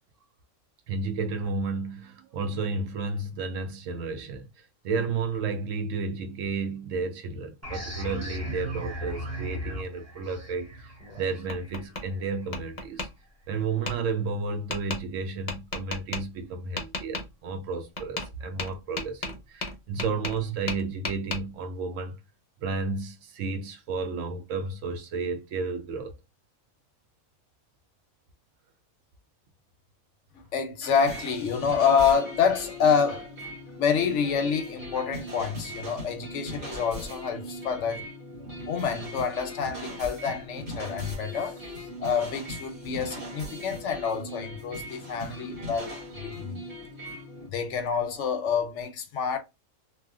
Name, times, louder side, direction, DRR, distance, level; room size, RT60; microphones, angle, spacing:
voice 1, 0.9-13.1 13.5-22.2 22.6-26.2, right 4 dB, 70° right, 0.9 m, -32 dB
sound 1, 7.6-13.0, equal, 15° right, 0.6 m, -37 dB
Tap, 11.0-12.0 12.5-13.1 13.9-14.0 14.7-15.0 15.5-16.2 16.8-17.3 18.0-18.3 18.6-20.4 20.7-21.4, left 3 dB, 40° left, 0.6 m, -33 dB
voice 2, 30.5-33.5 33.8-38.1 38.7-46.6 47.1-47.2 47.4-49.4, left 6 dB, 65° left, 0.8 m, -27 dB
sound 2, 30.9-47.5, equal, 50° right, 1.5 m, -39 dB
2.8 x 2.3 x 2.3 m
omnidirectional pair, 1.4 m